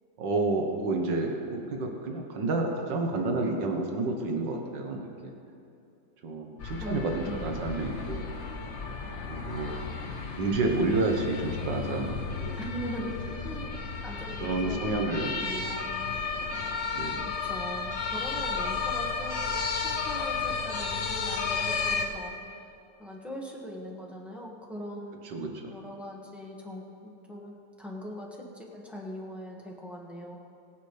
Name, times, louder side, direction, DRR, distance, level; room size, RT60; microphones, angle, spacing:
voice 1, 0.2-5.3 6.2-8.3 9.3-10.0 10.4-12.6 14.4-15.5 16.9-17.3 25.2-25.7, right 2 dB, 75° right, 2 dB, 1.9 m, -30 dB
sound 1, 6.6-22.1, left 5 dB, 45° left, 1.1 m, -33 dB
voice 2, 6.8-7.5 12.6-13.2 13.4-14.8 15.4-16.2 17.2-22.3 23.0-25.3 25.7-30.4, equal, ahead, -3 dB, 1.5 m, -41 dB
22.0 x 8.1 x 3.4 m, 2.7 s
omnidirectional pair, 2.0 m